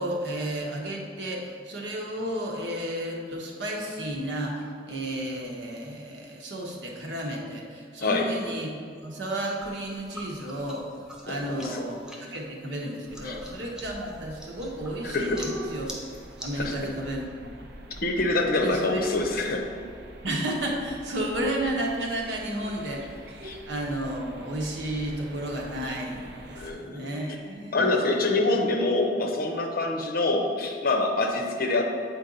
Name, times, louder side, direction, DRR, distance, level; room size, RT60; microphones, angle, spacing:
voice 1, 0.0-8.7 9.0-10.9 11.2-16.0 16.4-17.5 18.6-19.0 20.2-23.2 23.7-28.2, right 1 dB, 90° right, -1 dB, 1.2 m, -32 dB
sound 1, 9.6-17.3, equal, 5° right, 0.8 m, -45 dB
voice 2, 11.3-11.9 13.2-13.4 15.0-15.4 16.6-16.7 18.0-19.6 23.4-23.6 26.5-27.1 27.7-31.8, left 2 dB, 55° left, 2 dB, 0.8 m, -25 dB
sound 2, 13.1-26.7, right 1 dB, 65° right, 0.7 m, -44 dB
8.2 x 4.5 x 4.0 m, 2.3 s
head